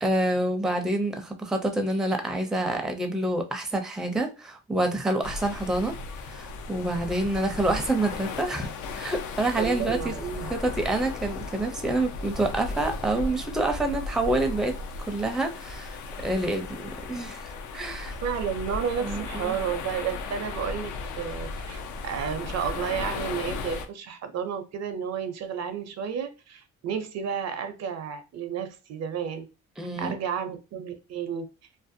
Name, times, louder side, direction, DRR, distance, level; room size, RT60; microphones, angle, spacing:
voice 1, 0.0-5.9 6.3-8.7 9.0-10.1 10.5-14.7 15.1-17.4 17.7-18.1 19.0-19.6 29.8-30.2, right 2 dB, ahead, 0.4 m, -27 dB
sound 1, 5.2-23.9, left 4 dB, 75° left, 0.5 m, -36 dB
voice 2, 9.6-10.5 18.2-29.5 30.0-31.5, right 7 dB, 60° right, 0.5 m, -32 dB
2.5 x 2.1 x 2.6 m
cardioid pair, 90°, 30 cm